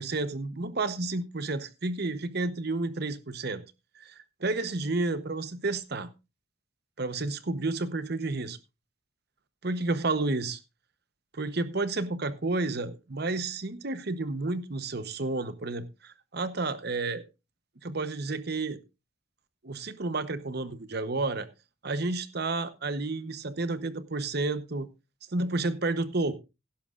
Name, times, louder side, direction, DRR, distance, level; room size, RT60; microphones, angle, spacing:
voice 1, 0.0-3.6 4.0-6.1 7.0-8.6 9.6-10.6 11.3-17.2 17.8-18.8 19.6-21.5 21.8-24.9 25.3-26.3, right 3 dB, 50° right, 0.9 m, -31 dB
16.0 x 11.5 x 2.5 m
head